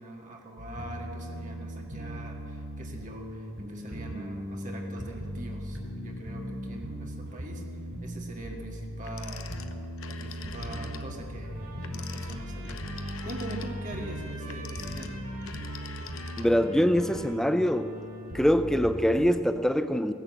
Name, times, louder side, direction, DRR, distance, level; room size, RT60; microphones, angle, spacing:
voice 1, 0.0-7.6 8.0-9.5 10.1-15.2, right 1 dB, 35° right, 0 dB, 1.8 m, -43 dB
sound 1, 0.6-19.3, equal, 55° right, 4.0 m, -38 dB
Telephone, 9.0-11.1 11.8-16.8, left 6 dB, 70° left, 0.9 m, -45 dB
Trumpet, 11.4-18.6, right 2 dB, 75° right, 3.0 m, -49 dB
voice 2, 16.4-17.9 18.3-20.1, equal, ahead, 11 dB, 0.4 m, -24 dB
17.5 x 10.5 x 7.7 m, 2.6 s
head